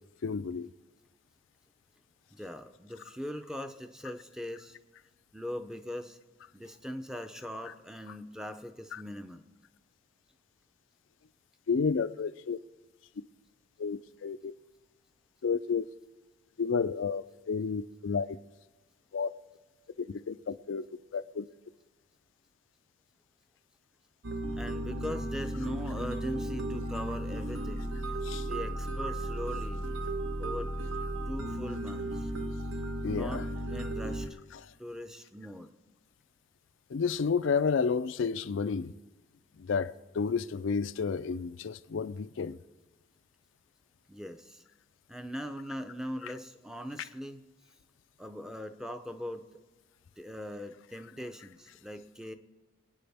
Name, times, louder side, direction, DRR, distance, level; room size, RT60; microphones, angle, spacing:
voice 1, 0.2-0.7 8.9-9.0 11.7-12.6 13.8-14.5 15.4-15.9 16.6-18.3 19.1-19.3 20.0-20.8 21.1-21.4 28.2-28.4 33.0-33.4 34.5-34.7 36.9-38.9 39.6-42.6, left 5 dB, 70° left, 0.4 m, -31 dB
voice 2, 2.3-4.8 5.3-6.2 6.5-9.4 24.5-27.9 28.5-29.8 30.4-30.7 31.3-32.3 33.0-34.4 34.8-35.7 44.1-44.6 45.1-47.4 48.2-49.5 50.2-52.3, equal, 5° right, 0.5 m, -40 dB
sound 1, 24.2-34.3, right 1 dB, 75° right, 1.2 m, -35 dB
24.0 x 9.4 x 3.5 m
head